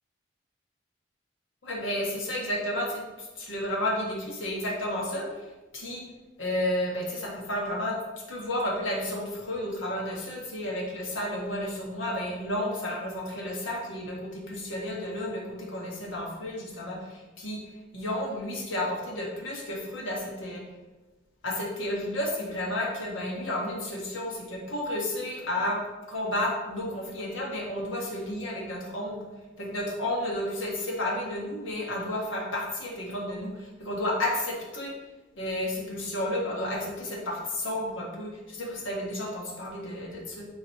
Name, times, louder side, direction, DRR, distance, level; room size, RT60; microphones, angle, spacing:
voice 1, 1.6-6.0 6.4-7.9 8.3-17.6 17.9-20.6 21.4-25.8 26.1-29.2 29.6-34.9 35.4-40.5, left 1 dB, 80° left, -2 dB, 1.6 m, -32 dB
9.6 x 4.0 x 3.1 m, 1.2 s
head